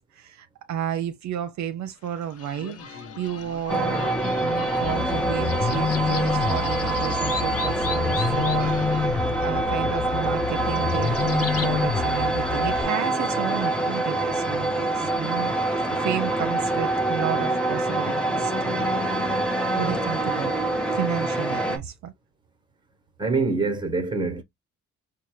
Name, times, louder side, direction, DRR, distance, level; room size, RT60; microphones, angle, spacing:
voice 1, 0.1-4.1 4.4-15.5 15.9-18.9 19.7-20.5 20.9-22.1, right 10 dB, 70° right, 0.6 m, -32 dB
sound 1, 2.0-11.7, left 6 dB, 50° left, 0.9 m, -37 dB
sound 2, 3.7-21.8, right 2 dB, 5° left, 0.9 m, -25 dB
sound 3, 4.8-12.8, left 7 dB, 30° left, 0.4 m, -28 dB
voice 2, 23.2-24.4, right 3 dB, 15° right, 1.1 m, -25 dB
4.3 x 2.3 x 3.0 m
cardioid pair, 90°, 30 cm